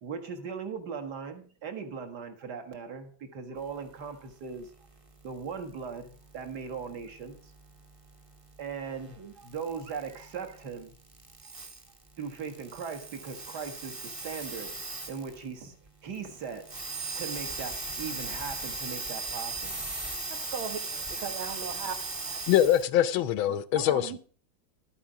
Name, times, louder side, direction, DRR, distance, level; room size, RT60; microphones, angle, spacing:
voice 1, 0.0-4.7 5.2-7.5 8.6-11.0 12.2-14.7 15.1-15.8 16.0-19.8, right 5 dB, 55° right, 2.1 m, -39 dB
sound 1, 5.2-15.5 15.9-16.0 16.1-22.8, right 3 dB, 20° right, 1.0 m, -38 dB
voice 2, 20.3-22.4 23.5-24.2, right 7 dB, 85° right, 2.2 m, -39 dB
voice 3, 22.5-24.2, left 11 dB, 85° left, 1.5 m, -24 dB
12.0 x 8.5 x 5.0 m
omnidirectional pair, 2.2 m